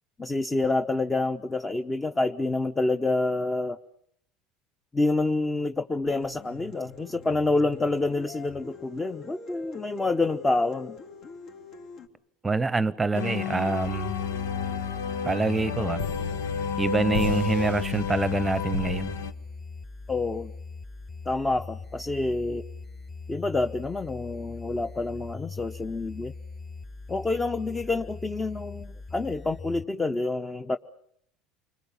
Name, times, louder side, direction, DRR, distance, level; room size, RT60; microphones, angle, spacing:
voice 1, 0.2-3.8 4.9-11.0 20.1-20.5 21.2-22.6 23.3-26.3 27.1-30.8, left 2 dB, 15° left, 1.0 m, -27 dB
sound 1, 6.1-12.1, left 5 dB, 60° left, 3.8 m, -45 dB
voice 2, 12.4-14.1 15.2-16.0 16.8-19.1, right 3 dB, 15° right, 0.9 m, -26 dB
sound 2, 13.1-19.3, left 7 dB, 90° left, 1.1 m, -30 dB
sound 3, 13.8-29.8, left 4 dB, 35° left, 3.1 m, -41 dB
28.5 x 21.5 x 7.3 m
supercardioid pair, 100°, 0 cm